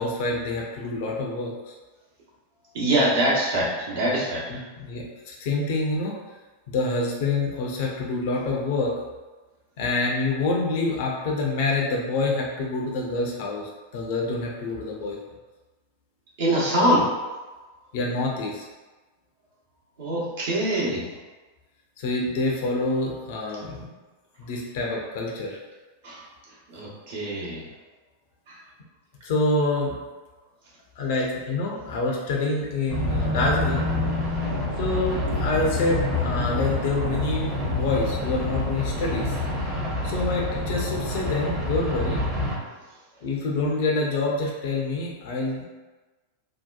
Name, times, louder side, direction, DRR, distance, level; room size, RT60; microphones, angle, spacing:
voice 1, 0.0-1.7 4.5-6.2 6.7-8.9 9.8-15.2 17.9-18.6 22.0-23.9 24.4-25.6 29.2-30.0 31.0-33.9 34.8-39.4 40.0-42.2 43.2-45.6, left 2 dB, 50° left, -2 dB, 0.5 m, -27 dB
voice 2, 2.7-4.4 16.4-17.1 20.0-21.1 26.0-26.2 26.7-27.6 28.5-28.6, right 1 dB, 55° right, -6 dB, 0.9 m, -23 dB
sound 1, 32.9-42.6, left 2 dB, 15° right, 0.8 m, -27 dB
2.7 x 2.2 x 2.3 m, 1.2 s
figure-of-eight pair, 90°, 0 cm